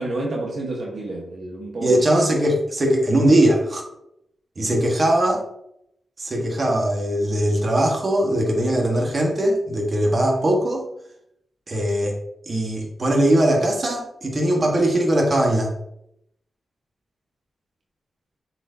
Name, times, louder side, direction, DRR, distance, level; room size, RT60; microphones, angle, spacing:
voice 1, 0.0-2.0 4.6-4.7, right 2 dB, 60° right, -1 dB, 1.2 m, -29 dB
voice 2, 1.8-3.8 4.6-5.4 6.2-10.8 11.7-12.2 12.5-15.7, right 1 dB, 40° right, 0 dB, 1.5 m, -20 dB
7.3 x 4.6 x 2.8 m, 0.78 s
cardioid pair, 85°, 0 cm